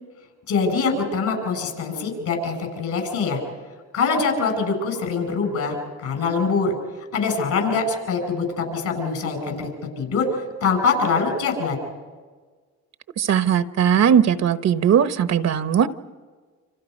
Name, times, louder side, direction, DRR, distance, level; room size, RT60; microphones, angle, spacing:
voice 1, 0.5-3.4 3.9-6.7 7.1-9.7 10.0-11.8, left 4 dB, 75° left, 4 dB, 7.6 m, -23 dB
voice 2, 13.2-15.9, right 8 dB, 60° right, 11 dB, 1.1 m, -19 dB
29.0 x 27.0 x 5.4 m, 1.5 s
cardioid pair, 90°, 30 cm